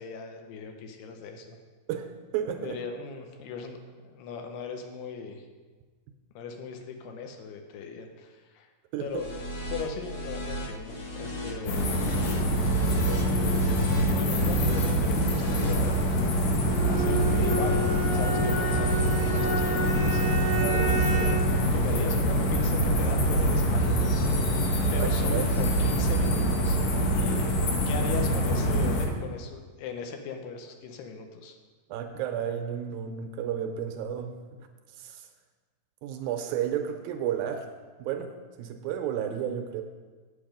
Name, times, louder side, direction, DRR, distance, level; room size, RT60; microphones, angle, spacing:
voice 1, 0.0-1.6 2.6-3.8 4.0-5.4 6.4-8.7 9.0-9.3 9.7-11.8 13.0-16.0 16.9-20.4 20.9-21.4 21.7-24.2 24.9-26.8 27.1-27.4 27.9-31.6, left 5 dB, 85° left, 5 dB, 2.9 m, -39 dB
voice 2, 2.3-2.8 8.9-9.2 20.6-20.9 25.0-25.4 31.9-34.3 35.0-35.3 36.0-37.7 38.0-38.3 38.6-39.8, right 9 dB, 80° right, 5 dB, 2.2 m, -32 dB
sound 1, 9.1-15.7, equal, 50° left, 1.8 m, -36 dB
sound 2, 11.7-29.1, equal, 65° left, 2.3 m, -25 dB
Bowed string instrument, 16.7-21.6, right 3 dB, 50° right, 0.9 m, -31 dB
8.6 x 8.3 x 5.1 m, 1.4 s
omnidirectional pair, 4.6 m